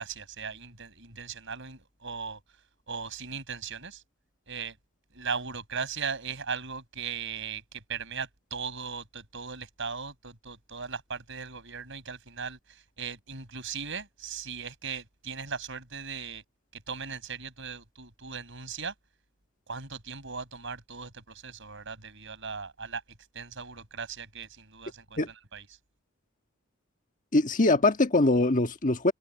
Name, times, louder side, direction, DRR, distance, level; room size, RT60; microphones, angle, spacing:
voice 1, 0.0-2.4 2.9-4.0 4.5-4.8 5.1-16.4 16.7-18.9 19.7-23.0 23.3-25.6, right 5 dB, 60° right, 6.8 m, -38 dB
voice 2, 27.3-29.1, left 2 dB, 40° left, 1.5 m, -23 dB
head